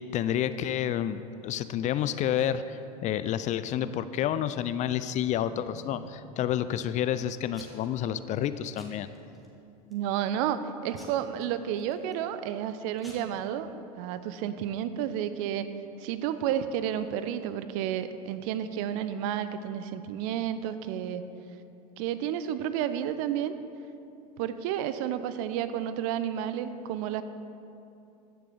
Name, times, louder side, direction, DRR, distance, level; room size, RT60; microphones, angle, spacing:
voice 1, 0.1-9.1, left 10 dB, 40° left, 13 dB, 0.4 m, -29 dB
Packing tape duct tape / Tearing, 4.9-6.1 6.6-7.1 7.5-8.0 8.3-8.5 8.8-9.5 9.9-10.3 11.0-12.2 12.7-12.8 13.0-13.1, left 1 dB, ahead, 2.1 m, -51 dB
voice 2, 9.9-13.7 14.0-15.7 16.0-21.2 22.0-23.5 24.4-27.2, right 10 dB, 60° right, 12 dB, 0.6 m, -31 dB
15.0 x 6.7 x 3.4 m, 2.7 s
hypercardioid pair, 80°, 20 cm